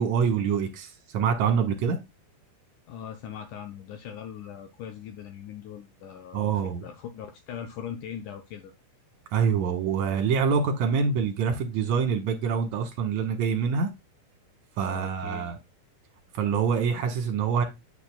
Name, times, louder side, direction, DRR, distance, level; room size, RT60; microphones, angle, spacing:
voice 1, 0.0-2.0 6.3-6.8 9.3-13.9 14.8-15.6 16.3-17.6, right 6 dB, 60° right, 2.3 m, -25 dB
voice 2, 2.9-8.7 14.8-15.5, left 9 dB, 75° left, 1.9 m, -40 dB
8.2 x 6.9 x 2.2 m
omnidirectional pair, 4.2 m